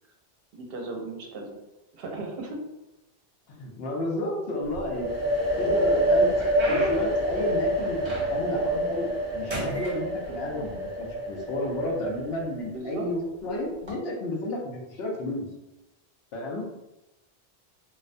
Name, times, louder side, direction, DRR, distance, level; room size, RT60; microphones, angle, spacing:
voice 1, 0.5-1.6 1.9-2.6 5.7-5.8 12.7-13.1, right 2 dB, 70° right, 1 dB, 0.7 m, -36 dB
voice 2, 3.5-5.1 5.6-6.3 6.7-15.5 16.3-16.6, left 1 dB, 75° left, -1 dB, 0.8 m, -31 dB
sound 1, 4.6-5.4 5.9-8.6 9.0-9.2 9.5-10.7 11.5-11.6 12.3-12.6 13.7-13.9, right 1 dB, 35° right, 0.6 m, -36 dB
sound 2, 4.9-12.6, right 1 dB, 25° left, 0.6 m, -27 dB
2.4 x 2.1 x 2.5 m, 0.96 s
omnidirectional pair, 1.1 m